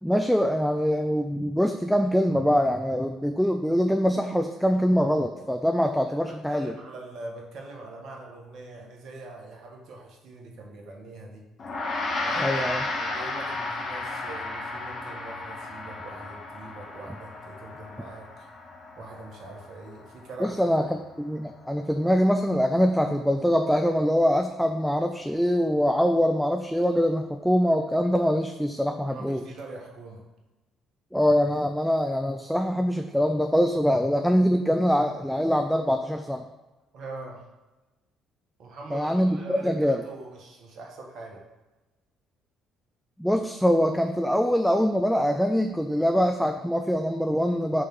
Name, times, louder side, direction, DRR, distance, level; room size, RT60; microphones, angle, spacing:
voice 1, 0.0-6.7 12.4-12.8 20.4-20.8 21.2-29.4 31.1-36.4 38.9-40.0 43.2-47.8, equal, ahead, 5 dB, 0.5 m, -23 dB
voice 2, 6.3-11.4 12.2-12.6 12.9-18.5 19.0-20.6 29.1-30.3 36.9-37.4 38.6-41.4, right 2 dB, 60° right, 0 dB, 1.4 m, -42 dB
Gong, 11.6-21.2, left 2 dB, 45° left, 1.3 m, -34 dB
6.6 x 3.4 x 6.0 m, 1.1 s
hypercardioid pair, 55°, 0 cm